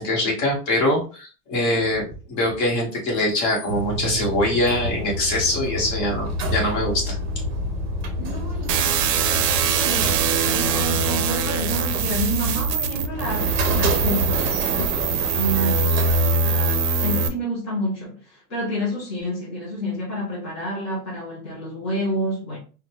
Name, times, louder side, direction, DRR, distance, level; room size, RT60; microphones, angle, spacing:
voice 1, 0.0-7.2, left 1 dB, 40° left, 1.3 m, -23 dB
sound 1, 3.7-17.1, equal, 40° right, 0.6 m, -28 dB
voice 2, 8.2-22.6, equal, 20° left, 0.4 m, -29 dB
sound 2, 8.7-17.3, right 5 dB, 80° right, 0.6 m, -23 dB
3.7 x 2.2 x 2.9 m
supercardioid pair, 165°, 48 cm